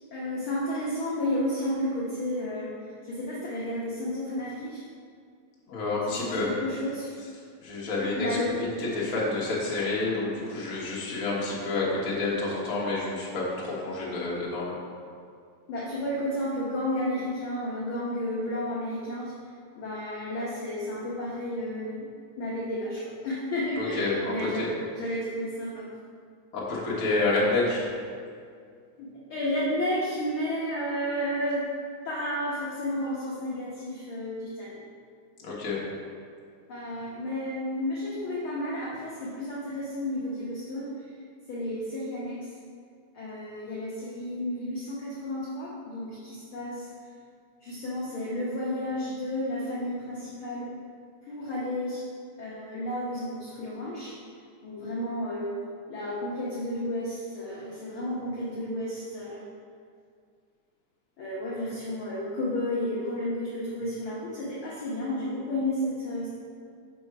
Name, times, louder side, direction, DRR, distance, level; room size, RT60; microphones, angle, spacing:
voice 1, 0.1-2.7 3.0-4.8 6.2-7.1 8.1-8.6 15.7-19.3 19.7-22.1 22.4-25.9 29.0-31.7 32.0-34.8 36.7-40.9 41.5-42.5 43.1-46.9 47.6-50.7 51.3-52.0 52.4-54.1 54.6-55.5 55.9-59.4 61.2-66.3, left 1 dB, 80° left, -6 dB, 1.1 m, -32 dB
voice 2, 5.7-6.5 7.6-8.3 8.6-14.7 23.8-24.7 26.5-27.8 35.4-35.8, left 2 dB, 55° left, -6 dB, 0.8 m, -29 dB
5.5 x 5.3 x 4.6 m, 2.2 s
omnidirectional pair, 3.6 m